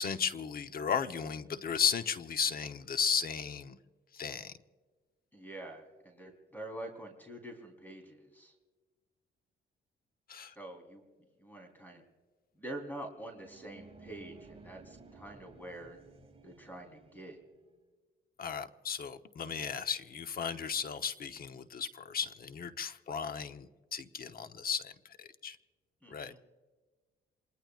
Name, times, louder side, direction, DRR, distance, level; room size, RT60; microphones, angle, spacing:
voice 1, 0.0-3.8 4.1-4.5 10.3-10.5 18.4-24.9 25.2-25.6 26.1-26.3, left 6 dB, 50° left, 9 dB, 1.0 m, -35 dB
voice 2, 5.3-8.5 10.3-11.0 11.4-12.0 12.5-16.0 16.4-17.4 26.0-26.4, right 1 dB, 10° left, 3 dB, 3.9 m, -46 dB
sound 1, 13.2-17.8, right 3 dB, 30° right, 2.0 m, -56 dB
27.5 x 21.0 x 2.5 m, 1.4 s
cardioid pair, 90°, 20 cm